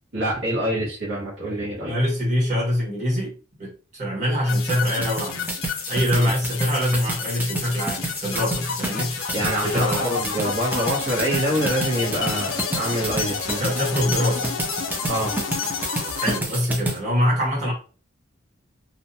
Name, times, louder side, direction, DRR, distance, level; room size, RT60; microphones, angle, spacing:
voice 1, 0.1-2.0 6.1-6.3 9.3-13.6 15.1-15.3, right 1 dB, 65° right, -7 dB, 0.9 m, -26 dB
voice 2, 1.8-5.5 5.9-9.2 9.6-10.1 13.6-14.5 16.2-17.7, equal, 35° right, -5 dB, 1.4 m, -24 dB
sound 1, 4.5-16.4, left 6 dB, 80° left, 0.4 m, -30 dB
sound 2, 4.7-17.0, right 2 dB, 10° right, 0.4 m, -30 dB
2.5 x 2.1 x 2.7 m, 0.37 s
head